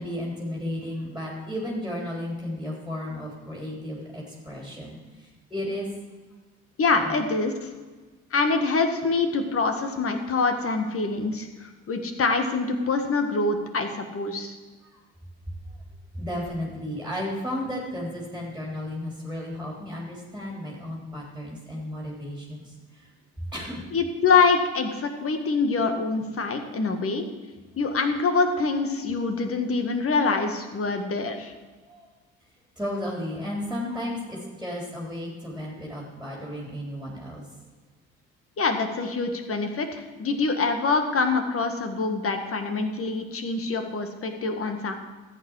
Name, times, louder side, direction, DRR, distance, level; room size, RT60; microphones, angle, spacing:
voice 1, 0.0-6.0 6.9-7.2 16.1-23.1 23.5-23.8 31.8-32.1 32.8-37.4, left 1 dB, ahead, -3 dB, 3.6 m, -34 dB
voice 2, 6.8-7.7 8.3-14.6 23.9-27.2 27.8-31.5 38.6-44.9, left 4 dB, 45° left, 6 dB, 1.7 m, -25 dB
13.5 x 8.2 x 4.8 m, 1.3 s
hypercardioid pair, 55°, 32 cm